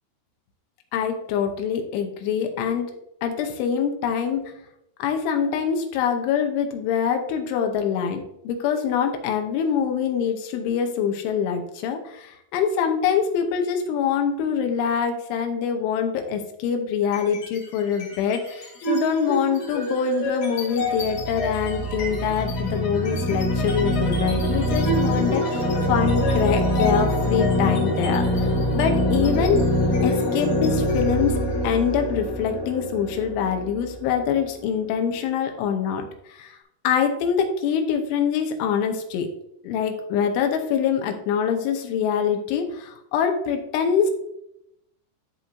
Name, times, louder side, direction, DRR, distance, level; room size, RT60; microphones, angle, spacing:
voice 1, 0.9-2.9 3.2-4.4 5.0-29.7 30.0-36.6 36.8-39.3 39.6-44.1, left 7 dB, 90° left, 5 dB, 3.2 m, -24 dB
sound 1, 17.0-17.6 17.9-34.5, equal, 45° left, 2.8 m, -24 dB
13.0 x 4.6 x 2.6 m, 0.80 s
omnidirectional pair, 5.5 m